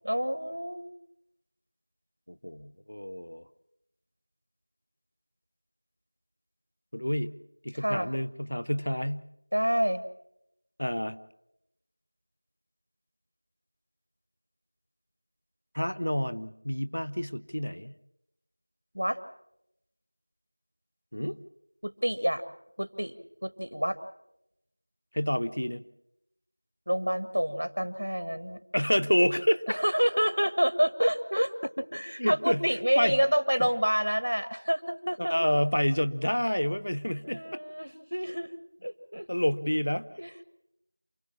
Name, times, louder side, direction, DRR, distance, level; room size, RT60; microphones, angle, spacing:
voice 1, 0.0-0.9 7.7-8.1 9.5-10.0 18.9-19.2 21.8-22.4 22.8-23.1 23.4-24.0 26.9-28.6 29.7-35.3 37.3-38.5 38.8-39.3 40.2-40.3, equal, 80° right, 11 dB, 1.7 m, -28 dB
voice 2, 2.3-3.4 6.9-7.4 7.6-9.3 10.8-11.2 15.7-17.9 21.1-21.4 25.1-25.8 28.7-29.8 32.2-32.6 33.0-33.2 35.2-37.4 39.3-40.1, equal, 45° left, 15 dB, 0.8 m, -28 dB
28.5 x 17.5 x 7.2 m, 0.84 s
figure-of-eight pair, 180°, 0 cm